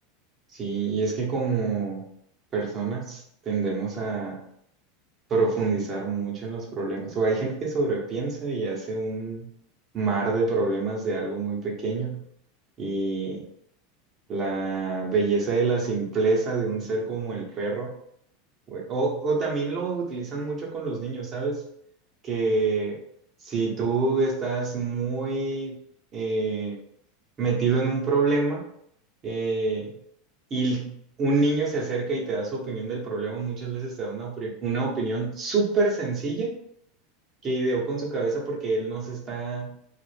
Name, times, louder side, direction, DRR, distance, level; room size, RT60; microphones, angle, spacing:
voice 1, 0.5-2.0 2.5-4.4 5.3-9.5 9.9-12.2 12.8-13.4 14.3-17.9 18.7-21.6 22.2-23.0 23.4-25.8 26.1-26.8 27.4-28.6 29.2-29.9 30.5-36.5 37.4-39.7, right 3 dB, 35° right, -2 dB, 1.0 m, -27 dB
2.4 x 2.1 x 3.3 m, 0.71 s
hypercardioid pair, 105°, 0 cm